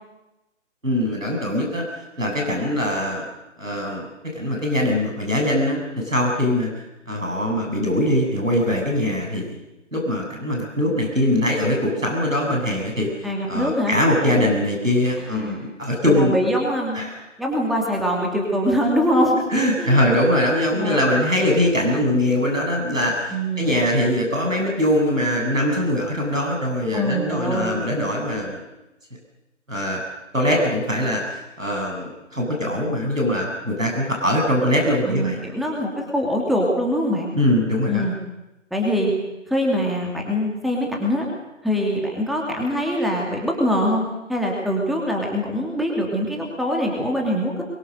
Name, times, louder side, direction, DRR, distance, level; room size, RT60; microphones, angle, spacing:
voice 1, 0.8-3.3 3.6-4.1 4.3-6.7 7.1-9.6 9.9-16.3 16.9-17.2 19.5-28.6 29.7-30.0 30.3-35.5 37.3-38.1, left 1 dB, 90° right, 0 dB, 7.6 m, -22 dB
voice 2, 13.2-14.0 15.3-15.7 16.1-17.0 17.4-19.4 19.8-20.0 20.7-21.0 23.3-23.8 26.9-27.8 35.0-37.3 37.9-38.1 38.7-39.1 39.5-41.3 41.6-47.6, equal, ahead, -1 dB, 2.7 m, -23 dB
24.5 x 23.0 x 6.7 m, 0.98 s
figure-of-eight pair, 140°, 38 cm